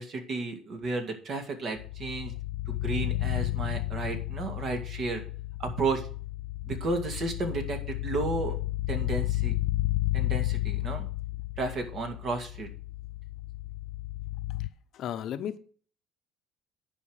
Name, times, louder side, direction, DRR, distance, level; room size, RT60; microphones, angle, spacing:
voice 1, 0.0-2.3 2.7-5.2 5.6-6.1 6.6-8.6 8.9-9.5 10.1-11.1 11.6-12.7, right 3 dB, 45° right, 5 dB, 2.3 m, -33 dB
sound 1, 1.8-14.7, left 18 dB, 85° left, 0.4 m, -32 dB
voice 2, 14.9-15.6, left 10 dB, 55° left, 10 dB, 0.9 m, -34 dB
10.0 x 5.2 x 6.5 m, 0.44 s
cardioid pair, 125°, 0 cm